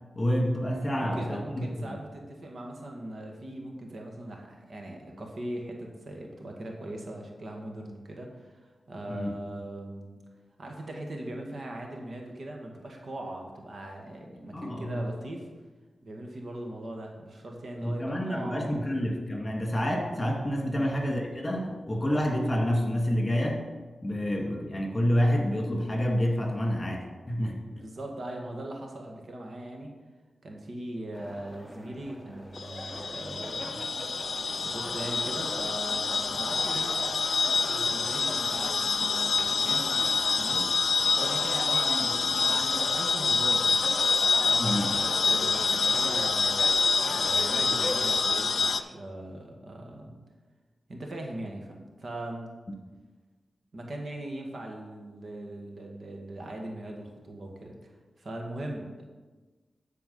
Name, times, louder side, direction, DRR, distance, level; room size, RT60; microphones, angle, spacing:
voice 1, 0.2-2.0 9.1-9.3 14.5-15.1 17.8-23.6 24.0-27.7 44.6-44.9, equal, 25° left, 1 dB, 2.1 m, -28 dB
voice 2, 0.9-10.2 10.6-15.5 16.0-18.8 20.6-20.9 27.7-29.9 30.4-33.9 34.6-36.9 37.7-40.1 40.4-40.7 41.1-43.8 44.2-50.2 50.9-52.6 53.7-59.1, right 1 dB, 60° right, 1 dB, 1.7 m, -40 dB
sound 1, 31.1-48.8, equal, ahead, 0.9 m, -40 dB
sound 2, 32.6-48.8, left 4 dB, 70° left, 0.5 m, -27 dB
12.5 x 4.6 x 5.5 m, 1.3 s
cardioid pair, 60°, 0 cm